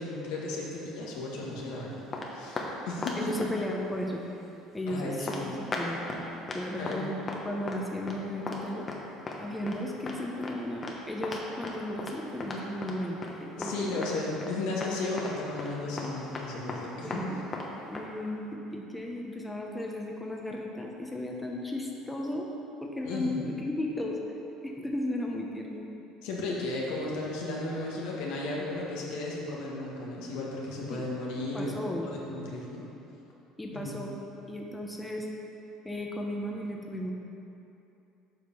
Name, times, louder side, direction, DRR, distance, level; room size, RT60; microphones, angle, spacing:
voice 1, 0.0-2.0 2.3-3.3 4.9-5.7 6.8-7.0 13.6-17.2 23.0-23.4 26.2-31.7 32.0-32.9 33.7-34.0, left 2 dB, 75° left, -4 dB, 1.6 m, -34 dB
sound 1, 1.1-1.6 2.1-2.7 3.0-3.8 4.2-4.4 4.9-5.0 5.3-5.4 5.7-6.2 6.5-7.0 7.3-7.4 7.7-8.2 8.5-8.6 8.9-9.0 9.3-9.4 9.7-9.8 10.1-10.2 10.4-10.6 10.8-11.0 11.2-13.0 13.2-13.3 13.6-14.1 14.4-14.5 14.8-14.9 15.2-15.3 15.6-15.7 16.0-16.8 17.1-17.3 17.5-17.7 17.9-18.0, left 3 dB, 35° left, 1.2 m, -36 dB
voice 2, 3.1-4.2 4.7-6.0 6.5-7.2 7.4-8.9 9.4-14.2 17.0-17.4 17.9-22.5 22.8-24.2 24.6-25.9 30.9-31.0 31.5-32.1 33.6-34.1 34.5-35.3 35.8-37.1, left 1 dB, 10° left, -1 dB, 1.1 m, -35 dB
7.9 x 5.1 x 5.4 m, 2.8 s
hypercardioid pair, 75°, 0 cm